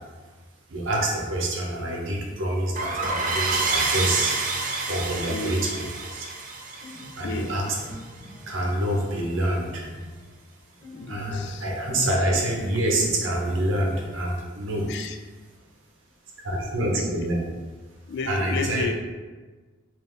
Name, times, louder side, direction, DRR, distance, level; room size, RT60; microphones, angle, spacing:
voice 1, 0.7-4.4 4.9-5.8 6.1-6.3 7.2-7.6 8.5-9.8 11.1-14.9 16.4-17.4 18.3-18.9, right 1 dB, 65° right, -2 dB, 0.8 m, -26 dB
sound 1, 2.7-8.1, right 3 dB, 40° right, 0.4 m, -28 dB
voice 2, 5.3-5.8 7.2-7.7 10.9-12.1 14.9-15.2 16.9-17.3 18.1-18.9, left 4 dB, 55° left, 6 dB, 0.3 m, -33 dB
Piano, 6.6-14.6, equal, 10° left, 1.0 m, -44 dB
3.3 x 2.6 x 3.8 m, 1.3 s
head